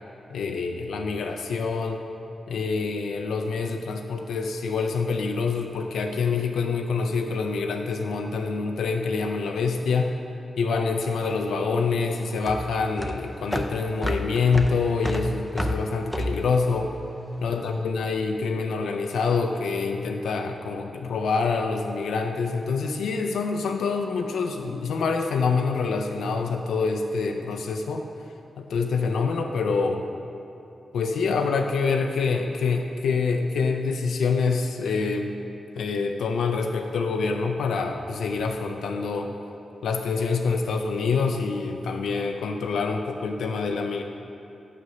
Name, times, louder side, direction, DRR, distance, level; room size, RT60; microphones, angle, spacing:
voice 1, 0.3-2.0 2.5-10.2 10.6-16.9 17.4-28.0 28.6-30.1 30.9-35.3 35.8-39.3 39.8-44.0, left 4 dB, 90° left, 3 dB, 0.4 m, -26 dB
sound 1, 11.1-17.6, equal, ahead, 0.6 m, -31 dB
6.6 x 5.2 x 6.3 m, 2.8 s
cardioid pair, 70°, 0 cm